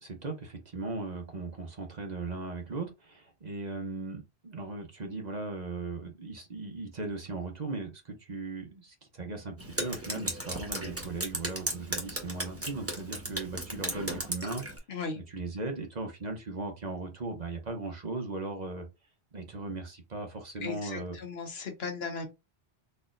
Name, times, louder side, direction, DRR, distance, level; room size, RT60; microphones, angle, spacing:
voice 1, 0.0-14.6 15.1-18.9 19.3-21.2, right 3 dB, 45° right, 0.9 m, -38 dB
Drip, 9.6-14.8, right 1 dB, 15° right, 1.0 m, -36 dB
voice 2, 14.9-15.2 20.6-22.3, left 4 dB, 70° left, 1.3 m, -36 dB
4.2 x 2.8 x 2.5 m
omnidirectional pair, 1.1 m